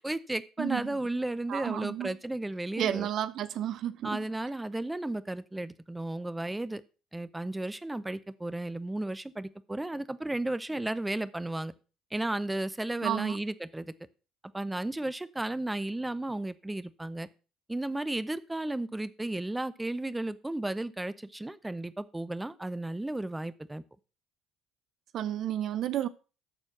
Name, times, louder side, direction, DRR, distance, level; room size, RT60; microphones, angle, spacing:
voice 1, 0.0-3.1 4.0-6.8 7.1-11.7 12.1-13.9 14.5-17.3 17.7-23.8, right 1 dB, 10° right, 0.7 m, -34 dB
voice 2, 0.6-1.0 1.5-2.1 2.8-4.2 13.0-13.4 25.1-26.1, right 11 dB, 55° right, 0.5 m, -31 dB
13.0 x 4.5 x 5.9 m
hypercardioid pair, 60°, 0 cm